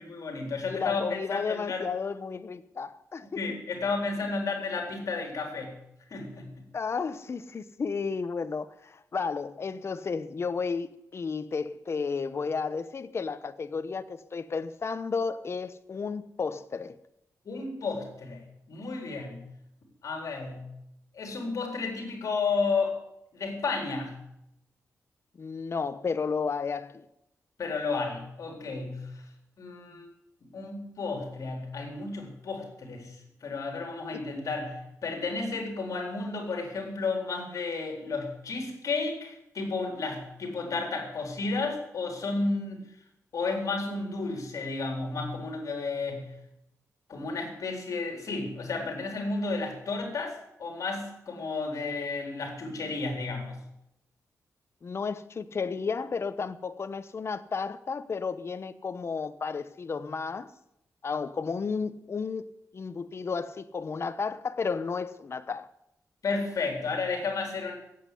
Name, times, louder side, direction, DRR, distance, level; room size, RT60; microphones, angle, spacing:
voice 1, 0.0-1.9 3.4-5.7 6.1-6.6 17.5-19.5 20.0-20.7 21.1-23.0 23.3-24.2 27.6-29.2 29.6-30.1 30.5-42.8 43.3-46.3 47.1-53.6 66.2-67.8, left 3 dB, 70° left, 4.2 m, -32 dB
voice 2, 0.7-3.4 6.7-16.9 25.4-27.0 34.1-34.2 54.8-60.5 61.0-65.7, left 5 dB, 45° left, 1.0 m, -33 dB
15.5 x 8.5 x 9.4 m
cardioid pair, 90°, 6 cm